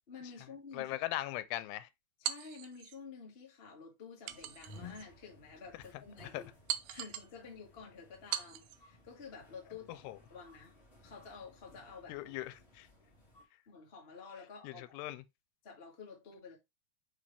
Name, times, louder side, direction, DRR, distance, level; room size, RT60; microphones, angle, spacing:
voice 1, 0.0-0.9 2.2-6.5 6.9-10.0 10.3-10.8 11.0-12.3 13.7-15.0 15.6-16.6, left 5 dB, 45° left, 0.7 m, -50 dB
voice 2, 0.7-1.9 6.3-6.4 10.0-10.2 12.1-12.9 14.6-15.2, left 16 dB, 90° left, 2.6 m, -39 dB
sound 1, 2.2-3.0 4.3-5.1 5.6-5.7 6.7-7.3 8.3-8.8, right 12 dB, 80° right, 2.2 m, -40 dB
sound 2, 4.3-13.4, left 3 dB, 25° left, 1.3 m, -58 dB
5.8 x 5.0 x 3.3 m
omnidirectional pair, 4.6 m